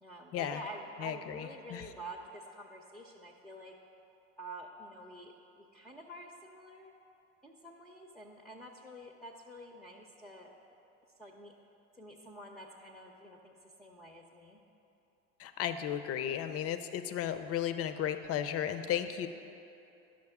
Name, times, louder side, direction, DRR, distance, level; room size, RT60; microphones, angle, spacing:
voice 1, 0.0-3.7 4.4-6.9 7.4-10.5 11.2-11.5 12.0-14.6, right 1 dB, ahead, 0 dB, 0.6 m, -48 dB
voice 2, 1.0-1.8 15.4-19.3, left 10 dB, 40° left, 10 dB, 0.6 m, -34 dB
11.0 x 6.3 x 3.6 m, 2.8 s
hypercardioid pair, 75°, 37 cm